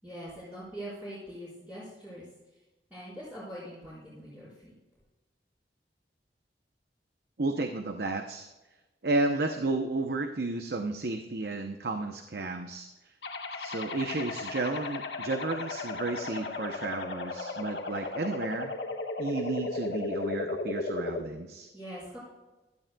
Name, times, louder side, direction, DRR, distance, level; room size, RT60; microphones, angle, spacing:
voice 1, 0.0-2.3 2.5-2.6 2.9-4.7 21.7-22.2, equal, 10° right, -12 dB, 4.5 m, -43 dB
voice 2, 7.4-8.5 9.0-12.9 13.5-18.7 19.2-21.7, right 2 dB, 65° right, 5 dB, 0.7 m, -32 dB
sound 1, 13.2-21.2, left 3 dB, 85° left, 1.5 m, -35 dB
16.5 x 12.5 x 2.3 m, 1.1 s
head